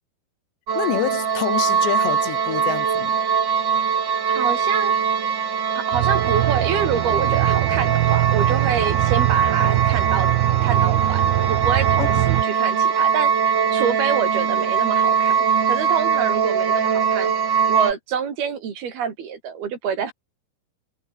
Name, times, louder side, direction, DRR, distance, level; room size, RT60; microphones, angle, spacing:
sound 1, 0.7-17.9, right 7 dB, 45° right, 1.5 m, -21 dB
voice 1, 0.8-3.2 12.0-12.2, left 12 dB, 85° left, 4.0 m, -27 dB
voice 2, 4.3-4.9 5.8-10.3 10.6-11.2 11.5-17.3 17.7-20.1, right 7 dB, 65° right, 5.3 m, -27 dB
Aircraft, 5.9-12.4, right 18 dB, 85° right, 2.9 m, -22 dB
omnidirectional pair, 4.8 m